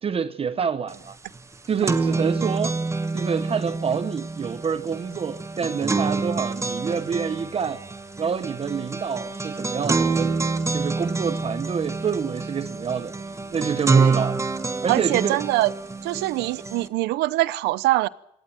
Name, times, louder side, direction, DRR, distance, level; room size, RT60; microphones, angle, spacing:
voice 1, 0.0-1.2 1.7-2.8 3.1-7.8 8.2-10.3 10.7-13.1 13.5-14.4 14.8-15.4, right 6 dB, 35° right, 1.0 m, -27 dB
sound 1, 0.9-1.0 1.3-16.9, right 4 dB, 15° right, 1.3 m, -27 dB
voice 2, 14.9-15.7 16.0-18.1, right 18 dB, 90° right, 0.8 m, -23 dB
21.5 x 17.5 x 9.0 m
cardioid pair, 110°, 17 cm